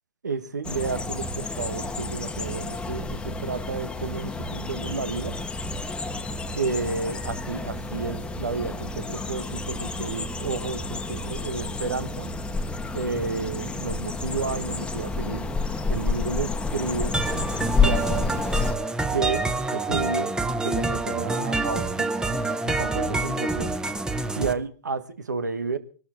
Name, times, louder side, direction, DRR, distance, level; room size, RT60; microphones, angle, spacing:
voice 1, 0.2-5.4 6.5-12.3 12.9-15.5 15.9-18.3 19.1-20.3 20.6-22.1 22.6-23.8 24.4-25.8, right 4 dB, 85° right, 1.5 m, -31 dB
sound 1, 0.6-18.8, left 3 dB, 10° left, 1.3 m, -30 dB
sound 2, 17.1-24.5, right 3 dB, 10° right, 1.1 m, -27 dB
24.0 x 12.5 x 4.5 m
figure-of-eight pair, 105°, 9 cm